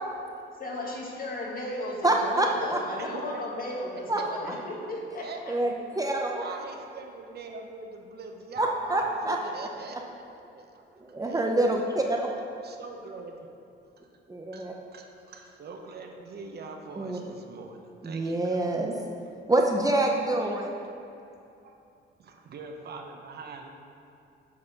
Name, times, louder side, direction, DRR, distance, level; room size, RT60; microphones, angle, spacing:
voice 1, 0.6-5.2, left 1 dB, 45° left, -2 dB, 1.7 m, -35 dB
voice 2, 2.0-2.8 4.1-4.2 4.5-4.6 5.5-6.4 8.6-9.4 11.0-12.3 14.3-14.7 17.0-17.2 18.0-18.9 19.5-20.7, right 2 dB, 15° right, 0 dB, 0.7 m, -26 dB
voice 3, 3.0-3.6 3.9-4.2 5.2-5.4 6.4-10.0 10.5-11.7 12.6-13.5 14.0-14.1 14.5-18.8 20.4-20.6 21.6-21.8 22.2-23.7, right 4 dB, 55° right, 3 dB, 0.8 m, -43 dB
7.5 x 4.2 x 5.9 m, 2.6 s
cardioid pair, 90°, 20 cm